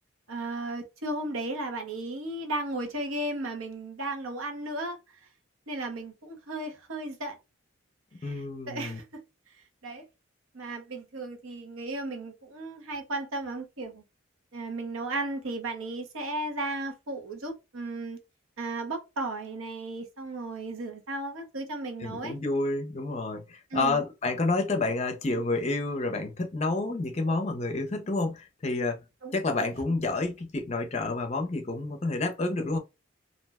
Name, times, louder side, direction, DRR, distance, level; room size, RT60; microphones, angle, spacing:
voice 1, 0.3-5.0 5.7-7.4 8.2-9.2 9.8-10.0 10.5-14.0 14.5-18.2 18.6-22.4 23.7-24.0 29.2-29.7, right 2 dB, 85° right, 0.8 m, -35 dB
voice 2, 8.2-9.0 22.0-29.0 29.3-32.8, left 2 dB, 30° left, 0.5 m, -29 dB
2.5 x 2.1 x 3.4 m
head